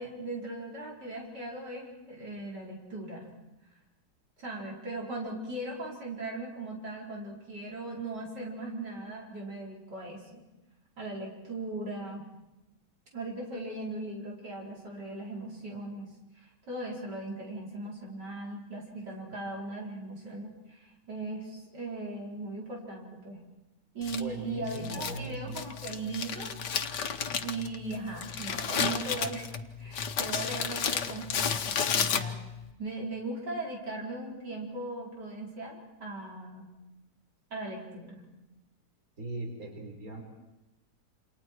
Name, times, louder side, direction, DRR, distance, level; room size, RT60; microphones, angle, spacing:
voice 1, 0.0-3.3 4.4-10.3 11.0-12.3 13.1-23.4 23.9-26.5 27.4-32.4 32.8-36.7 37.5-38.3, right 2 dB, 85° right, -2 dB, 5.4 m, -38 dB
Crumpling crinkling, 24.0-32.6, left 7 dB, 80° left, 1.8 m, -32 dB
voice 2, 24.1-25.6 39.2-40.2, right 2 dB, 55° right, 0 dB, 5.1 m, -39 dB
29.0 x 28.5 x 4.7 m, 0.97 s
omnidirectional pair, 1.8 m